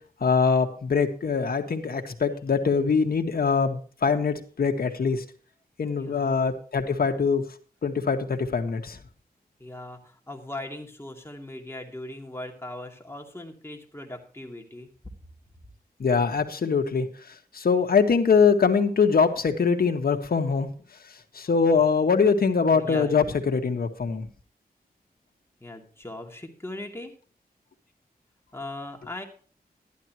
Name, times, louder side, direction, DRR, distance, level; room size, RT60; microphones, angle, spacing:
voice 1, 0.2-5.2 5.8-7.4 7.8-9.0 16.0-17.1 17.5-20.7 21.3-24.3, left 5 dB, 70° left, 4 dB, 1.7 m, -23 dB
voice 2, 6.0-6.3 9.6-14.9 22.7-23.3 25.6-27.1 28.5-29.2, left 1 dB, 15° left, 2 dB, 2.5 m, -39 dB
12.5 x 11.5 x 3.0 m, 0.43 s
wide cardioid pair, 110°, 16 cm